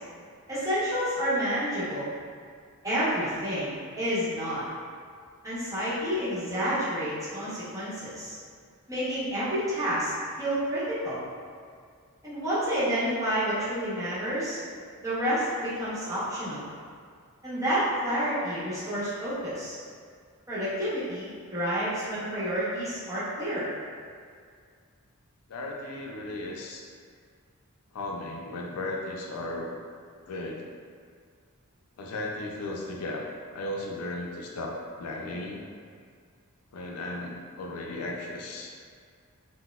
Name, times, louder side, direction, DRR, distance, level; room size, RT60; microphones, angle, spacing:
voice 1, 0.5-2.1 2.8-4.6 5.4-8.4 8.9-10.1 10.4-11.2 12.2-14.6 15.0-16.7 17.4-19.8 20.5-23.6, equal, 15° right, -11 dB, 0.9 m, -29 dB
voice 2, 25.5-26.8 27.9-29.8 30.3-30.7 32.0-33.3 33.5-35.6 36.7-38.7, left 2 dB, 85° left, -1 dB, 0.4 m, -35 dB
4.1 x 2.0 x 2.3 m, 2.1 s
head